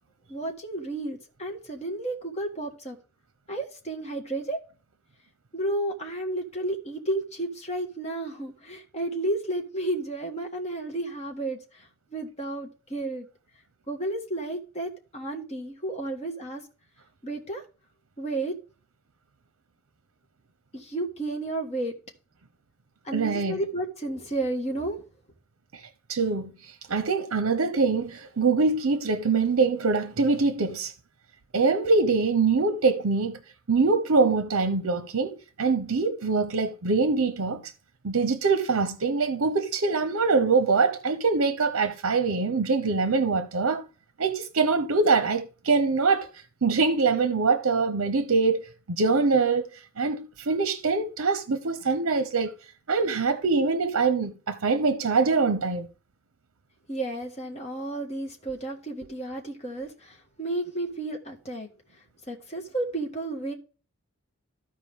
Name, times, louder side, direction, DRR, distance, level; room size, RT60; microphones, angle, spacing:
voice 1, 0.3-3.0 3.5-4.6 5.5-13.3 13.9-16.6 17.2-17.6 18.2-18.5 20.7-21.9 23.0-25.0 56.9-61.7 62.3-63.5, right 2 dB, 30° left, 1.5 m, -32 dB
voice 2, 23.1-23.6 26.1-30.9 31.5-33.4 33.7-37.7 38.0-43.8 44.2-46.3 46.6-49.7 50.0-52.5 52.9-55.9, right 4 dB, 70° right, 0.7 m, -24 dB
14.0 x 4.8 x 3.6 m
head